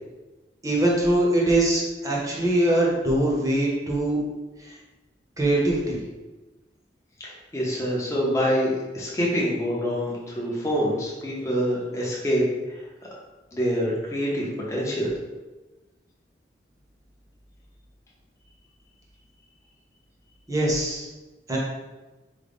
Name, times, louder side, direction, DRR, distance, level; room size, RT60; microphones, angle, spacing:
voice 1, 0.6-4.2 4.6-4.7 5.4-6.0 20.5-21.1 21.5-21.6, right 1 dB, 20° right, -4 dB, 0.7 m, -22 dB
voice 2, 7.2-12.8 13.5-15.1, equal, 15° left, -4 dB, 0.6 m, -26 dB
3.8 x 2.1 x 3.4 m, 1.1 s
head